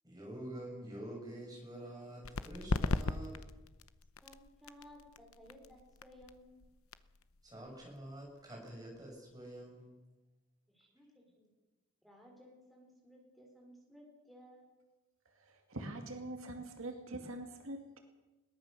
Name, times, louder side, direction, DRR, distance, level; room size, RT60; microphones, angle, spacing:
voice 1, 0.0-3.4 7.4-9.9, right 1 dB, 20° right, 0 dB, 6.7 m, -47 dB
sound 1, 2.2-9.6, left 3 dB, 75° left, 0.8 m, -40 dB
voice 2, 4.2-6.7 10.7-11.5 12.0-14.8, equal, ahead, 0 dB, 4.4 m, -58 dB
voice 3, 15.3-18.0, right 1 dB, 70° right, 4 dB, 2.3 m, -44 dB
21.5 x 18.0 x 6.8 m, 1.1 s
head